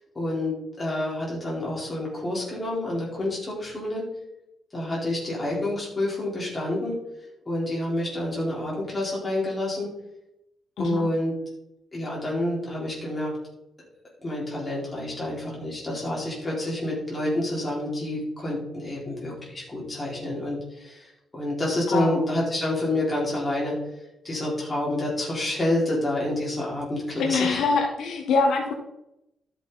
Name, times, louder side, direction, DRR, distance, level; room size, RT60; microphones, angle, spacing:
voice 1, 0.1-4.0 4.7-7.0 7.5-9.9 10.8-11.3 11.9-13.3 14.2-23.8 24.2-27.6, left 1 dB, 15° left, -5 dB, 4.4 m, -28 dB
voice 2, 10.8-11.1 21.9-22.2 27.2-28.7, left 4 dB, 70° left, 1 dB, 1.6 m, -24 dB
13.0 x 7.6 x 4.1 m, 0.84 s
cardioid pair, 160°, 0 cm